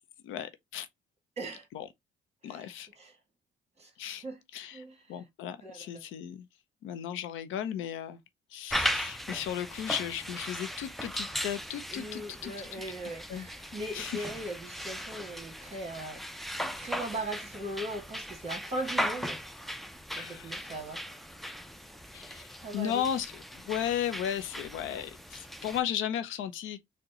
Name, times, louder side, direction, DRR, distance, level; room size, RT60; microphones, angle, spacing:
voice 1, 0.2-0.9 1.7-1.9 2.4-2.9 4.0-4.2 4.5-4.8 5.1-6.5 6.8-8.2 8.5-12.8 13.3-13.5 13.9-14.3 20.2-20.6 22.1-22.5 22.7-26.8, left 10 dB, 85° left, 0.6 m, -35 dB
voice 2, 2.4-3.1 3.8-3.9 4.2-4.4 4.7-5.0 5.6-6.0 11.9-19.4 20.1-21.0 22.6-23.0, right 1 dB, 30° right, 1.5 m, -39 dB
sound 1, 8.7-25.8, equal, ahead, 0.4 m, -38 dB
3.7 x 2.2 x 2.7 m
cardioid pair, 90°, 20 cm